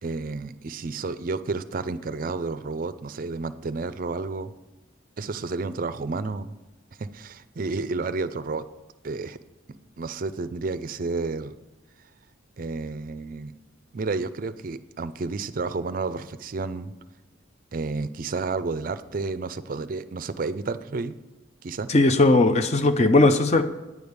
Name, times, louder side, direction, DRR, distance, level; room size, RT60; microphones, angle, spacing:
voice 1, 0.0-4.5 5.2-6.5 7.0-8.6 9.0-9.4 10.0-11.5 12.6-13.5 13.9-16.9 17.7-21.1 21.6-21.9, right 3 dB, 45° right, 13 dB, 0.4 m, -31 dB
voice 2, 21.9-23.6, left 2 dB, 35° left, 8 dB, 0.5 m, -18 dB
9.5 x 5.2 x 8.0 m, 1.1 s
head